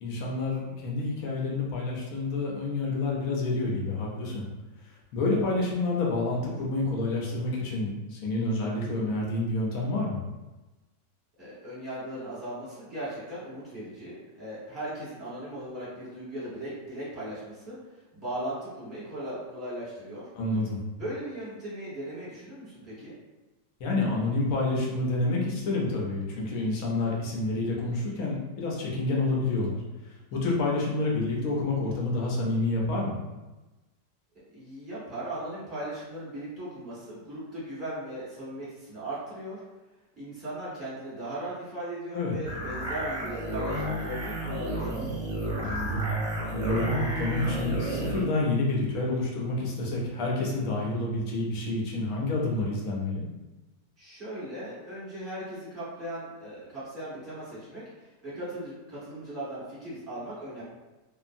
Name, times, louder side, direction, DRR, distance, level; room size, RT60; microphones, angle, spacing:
voice 1, 0.0-4.4 5.1-10.2 20.3-20.8 23.8-29.8 30.3-33.1 42.1-42.3 45.6-46.1 46.5-53.2, left 2 dB, 65° left, -3 dB, 1.0 m, -28 dB
voice 2, 11.4-17.8 18.1-20.3 21.0-23.1 34.5-39.6 40.2-45.0 54.0-60.6, right 1 dB, 10° right, -11 dB, 1.3 m, -38 dB
sound 1, 42.5-48.2, right 1 dB, 50° right, 0.9 m, -31 dB
2.8 x 2.5 x 2.5 m, 1.1 s
omnidirectional pair, 1.9 m